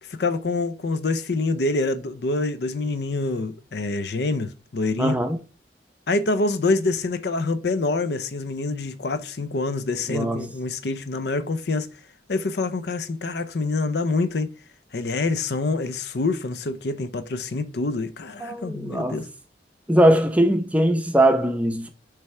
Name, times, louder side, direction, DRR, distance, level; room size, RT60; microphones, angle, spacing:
voice 1, 0.0-5.2 6.1-11.9 12.3-14.5 14.9-19.3, left 3 dB, 70° left, 0.5 m, -26 dB
voice 2, 5.0-5.4 10.1-10.5 18.4-19.2 19.9-21.9, right 1 dB, 10° right, 0.6 m, -20 dB
6.8 x 3.4 x 4.3 m
head